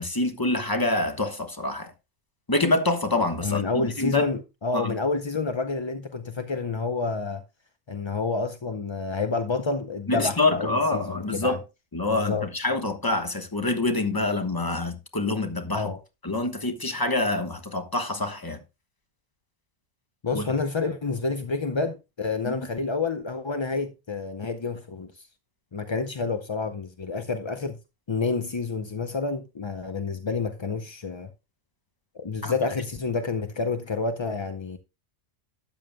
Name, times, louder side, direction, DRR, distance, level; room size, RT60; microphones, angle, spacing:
voice 1, 0.0-1.9 2.5-4.3 4.7-4.9 10.1-11.6 11.9-15.9 16.2-18.6 20.3-20.4 22.4-22.7 32.4-32.5, left 2 dB, 20° left, 1.1 m, -26 dB
voice 2, 3.4-7.4 7.9-11.6 12.1-12.5 15.7-16.0 20.2-25.3 25.7-27.8 28.1-31.3 32.1-34.8, left 4 dB, 35° left, 0.4 m, -29 dB
12.5 x 9.2 x 2.2 m
omnidirectional pair, 1.4 m